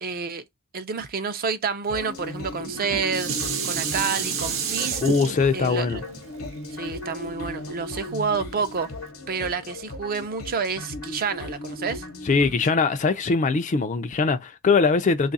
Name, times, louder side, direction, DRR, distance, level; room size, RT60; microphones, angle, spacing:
voice 1, 0.0-0.4 0.7-3.3 3.6-5.0 5.5-6.0 6.7-8.9 9.3-12.1, right 5 dB, 40° right, 0.5 m, -29 dB
sound 1, 1.9-12.7, left 1 dB, 70° left, 0.8 m, -36 dB
Dishes pots and pans, 2.5-7.8 8.3-8.4, right 6 dB, 65° right, 0.8 m, -30 dB
voice 2, 5.0-6.0 12.3-15.3, left 4 dB, 35° left, 0.4 m, -21 dB
3.2 x 2.4 x 4.0 m
head